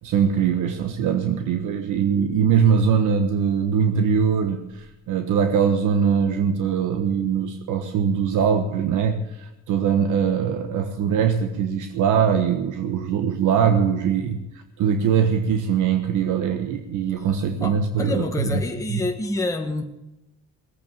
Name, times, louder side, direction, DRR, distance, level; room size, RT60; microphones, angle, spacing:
voice 1, 0.0-18.6 18.9-19.0, right 7 dB, 80° right, 6 dB, 1.3 m, -22 dB
voice 2, 17.6-19.8, left 2 dB, 10° left, 2 dB, 1.5 m, -27 dB
18.5 x 8.5 x 7.1 m, 0.94 s
cardioid pair, 90°, 30 cm